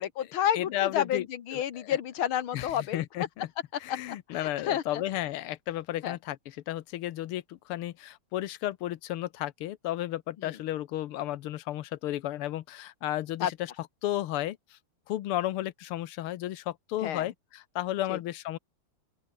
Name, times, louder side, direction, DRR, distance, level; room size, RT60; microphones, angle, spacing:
voice 1, 0.0-3.0 3.9-5.0 6.0-6.2 10.4-10.6 13.4-13.5 17.0-17.3 18.1-18.2, left 10 dB, 70° left, 2.2 m, -30 dB
voice 2, 0.5-1.2 1.5-2.0 2.5-3.5 3.8-13.7 14.0-14.8 15.1-18.6, left 14 dB, 85° left, 1.8 m, -33 dB
open air
omnidirectional pair, 2.4 m